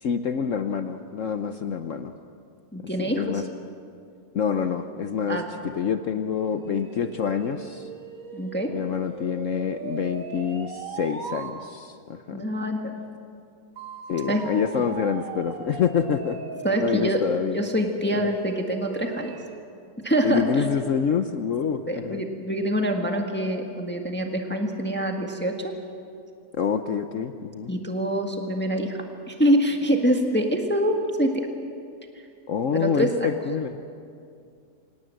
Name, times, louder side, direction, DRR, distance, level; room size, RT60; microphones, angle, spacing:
voice 1, 0.0-2.1 3.0-3.4 4.3-7.9 8.7-12.4 14.1-16.4 16.8-17.6 18.1-18.2 20.2-22.2 26.6-27.7 32.5-33.8, left 7 dB, 60° left, 8 dB, 1.1 m, -27 dB
voice 2, 2.7-3.4 5.3-5.5 8.3-8.7 12.3-12.9 14.3-14.4 14.7-14.9 16.6-17.2 17.5-19.3 20.0-20.7 21.9-25.7 27.7-29.0 29.3-31.5 32.7-33.3, equal, 5° left, 3 dB, 1.5 m, -25 dB
sound 1, 6.3-11.6 13.8-19.6, right 4 dB, 60° right, 1.8 m, -39 dB
26.0 x 18.0 x 7.7 m, 2.4 s
omnidirectional pair, 1.7 m